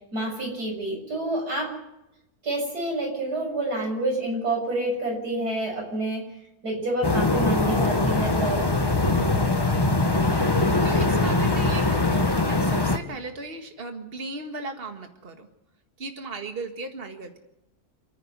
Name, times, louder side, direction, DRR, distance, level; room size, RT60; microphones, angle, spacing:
voice 1, 0.1-1.8 2.4-6.2 6.6-8.7, right 1 dB, 80° right, 1 dB, 7.2 m, -28 dB
sound 1, 7.0-13.0, left 2 dB, 15° left, 1.1 m, -22 dB
voice 2, 9.0-15.5 16.0-17.4, right 3 dB, 35° right, 5 dB, 2.1 m, -37 dB
28.5 x 10.0 x 9.6 m, 0.86 s
omnidirectional pair, 1.7 m